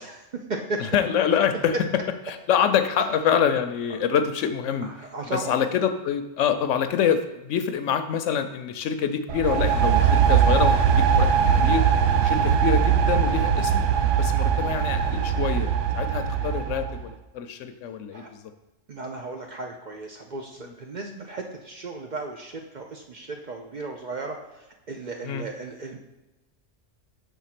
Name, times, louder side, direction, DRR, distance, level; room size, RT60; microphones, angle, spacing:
voice 1, 0.0-0.8 4.8-5.6 18.1-18.3 18.9-26.0, right 3 dB, 50° right, 2 dB, 0.6 m, -35 dB
voice 2, 0.8-1.7 2.3-4.9 5.3-11.3 11.6-11.8 12.2-13.8 14.2-18.4 25.2-25.5, left 8 dB, 80° left, 9 dB, 0.9 m, -26 dB
sound 1, 9.3-17.0, right 8 dB, 75° right, 0.9 m, -21 dB
6.2 x 3.6 x 5.8 m, 1.0 s
omnidirectional pair, 1.3 m